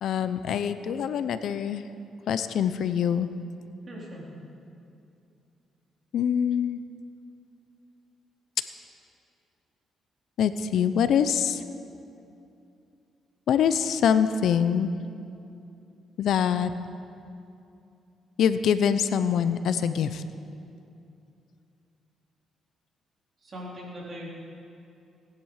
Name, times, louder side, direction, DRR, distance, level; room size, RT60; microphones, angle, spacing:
voice 1, 0.0-1.8 2.3-3.3 6.1-6.8 10.4-11.6 13.5-14.9 16.2-16.7 18.4-20.2, left 8 dB, 70° left, 12 dB, 0.6 m, -24 dB
voice 2, 3.9-4.2 23.4-24.3, equal, 40° right, -4 dB, 3.8 m, -40 dB
18.5 x 10.5 x 4.9 m, 2.6 s
cardioid pair, 90°, 0 cm